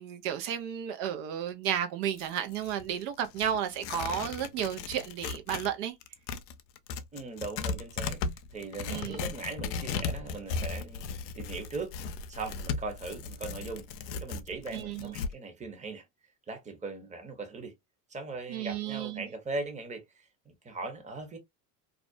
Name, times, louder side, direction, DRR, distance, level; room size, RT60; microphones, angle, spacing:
voice 1, 0.0-5.9 8.9-9.2 14.7-15.1 18.5-19.3, right 9 dB, 70° right, 0.6 m, -33 dB
Tearing, 2.0-5.7 6.0-15.3, left 5 dB, 85° left, 0.6 m, -37 dB
voice 2, 7.1-8.2 8.5-11.1 11.3-11.9 12.3-13.9 14.2-16.1 16.5-17.7 18.1-20.0 20.5-21.4, right 3 dB, 15° right, 0.8 m, -39 dB
2.5 x 2.1 x 2.4 m
hypercardioid pair, 90°, 50 cm